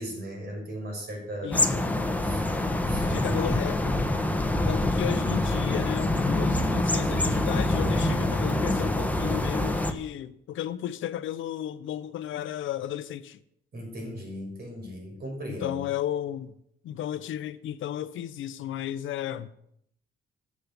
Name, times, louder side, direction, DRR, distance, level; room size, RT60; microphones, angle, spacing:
voice 1, 0.0-1.6 2.2-2.4 2.8-3.7 13.7-15.8, equal, 50° right, 6.5 m, -37 dB
voice 2, 1.4-1.8 3.0-4.0 4.7-13.4 15.6-16.5 16.8-19.5, left 11 dB, 80° left, 0.9 m, -34 dB
sound 1, 1.5-9.9, left 1 dB, 10° left, 1.4 m, -25 dB
11.5 x 7.6 x 8.6 m
cardioid pair, 90°, 20 cm